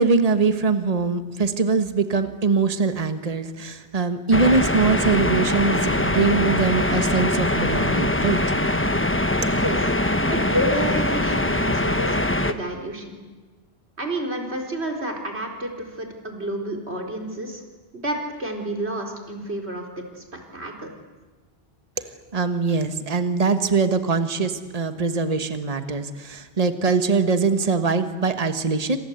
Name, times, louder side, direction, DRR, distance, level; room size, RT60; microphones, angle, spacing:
voice 1, 0.0-8.4 22.0-22.1 22.3-29.0, right 4 dB, 35° right, 8 dB, 1.5 m, -22 dB
sound 1, 4.3-12.5, left 1 dB, 10° left, 1.1 m, -22 dB
voice 2, 10.3-13.2 14.0-17.6 17.9-20.2 20.5-20.9, right 1 dB, 80° right, 1 dB, 4.5 m, -29 dB
28.0 x 26.5 x 8.1 m, 1.3 s
omnidirectional pair, 1.1 m